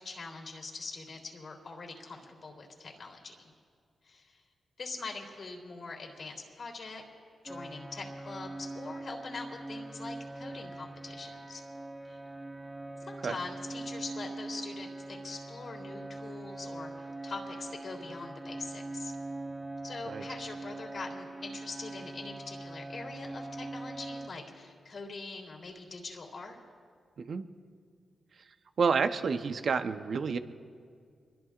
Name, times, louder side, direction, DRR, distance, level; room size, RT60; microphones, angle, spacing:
voice 1, 0.0-3.5 4.0-4.4 4.8-7.0 7.4-11.6 12.0-12.2 13.0-19.1 19.8-26.6, left 3 dB, 60° left, 1 dB, 3.4 m, -43 dB
sound 1, 7.5-24.3, right 2 dB, 15° right, 1.3 m, -42 dB
voice 2, 28.8-30.4, right 5 dB, 65° right, 9 dB, 0.9 m, -29 dB
24.5 x 22.0 x 2.5 m, 2.1 s
cardioid pair, 50°, 0 cm